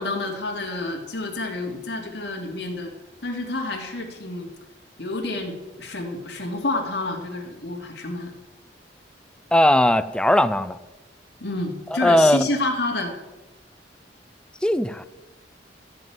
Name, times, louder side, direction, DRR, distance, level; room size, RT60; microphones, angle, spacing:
voice 1, 0.0-2.9 3.2-4.5 5.0-8.3 11.4-13.1, left 2 dB, 65° left, 2.6 m, -29 dB
voice 2, 9.5-10.8 11.9-12.5 14.6-15.1, left 1 dB, 5° left, 0.4 m, -18 dB
14.0 x 5.3 x 9.1 m
head